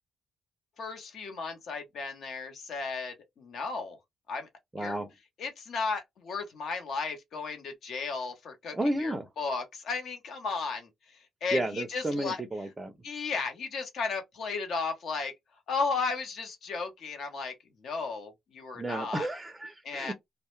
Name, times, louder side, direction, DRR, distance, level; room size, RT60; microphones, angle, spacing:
voice 1, 0.8-4.0 4.3-4.5 4.8-5.0 5.4-10.9 11.4-12.4 13.0-15.3 15.7-17.5 17.8-19.3 19.8-20.1, left 4 dB, 60° left, 0.8 m, -34 dB
voice 2, 4.7-5.1 8.7-9.3 11.5-12.9 18.7-20.1, right 1 dB, 15° right, 0.4 m, -32 dB
2.1 x 2.1 x 3.0 m
cardioid pair, 155°, 0 cm